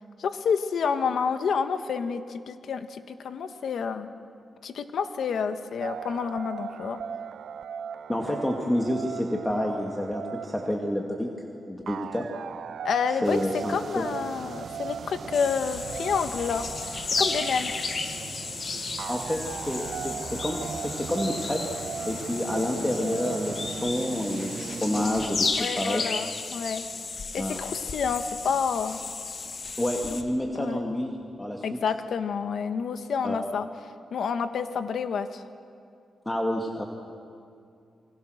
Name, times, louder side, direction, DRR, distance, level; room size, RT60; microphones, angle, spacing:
voice 1, 0.2-4.1 4.6-7.0 12.8-16.7 17.2-17.7 25.6-26.8 27.3-29.0 30.5-30.8 31.6-33.7 34.1-35.4, left 6 dB, 75° left, 8 dB, 1.4 m, -29 dB
sound 1, 5.8-23.9, right 8 dB, 80° right, 0.5 m, -39 dB
voice 2, 8.1-11.3 11.7-12.2 13.2-14.0 19.1-21.8 22.0-25.5 25.7-26.0 27.4-27.6 29.8-31.6 33.2-33.4 36.3-36.9, left 1 dB, 10° left, 1 dB, 2.2 m, -29 dB
sound 2, 13.2-25.3, right 5 dB, 60° right, 1.5 m, -41 dB
sound 3, 15.3-30.2, left 4 dB, 50° left, 2.1 m, -34 dB
28.0 x 24.0 x 6.6 m, 2.4 s
cardioid pair, 90°, 0 cm